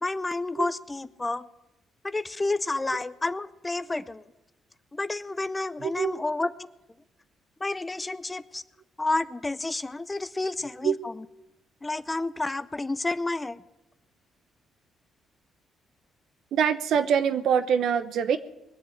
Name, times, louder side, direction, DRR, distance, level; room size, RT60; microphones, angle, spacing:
voice 1, 0.0-1.5 2.0-4.2 4.9-6.5 7.6-8.6 9.0-11.3 11.8-13.6, left 2 dB, 20° left, 15 dB, 0.6 m, -30 dB
voice 2, 5.8-6.3 10.8-10.9 16.5-18.4, right 7 dB, 75° right, 11 dB, 0.9 m, -24 dB
20.5 x 7.7 x 7.9 m, 0.96 s
cardioid pair, 90°, 0 cm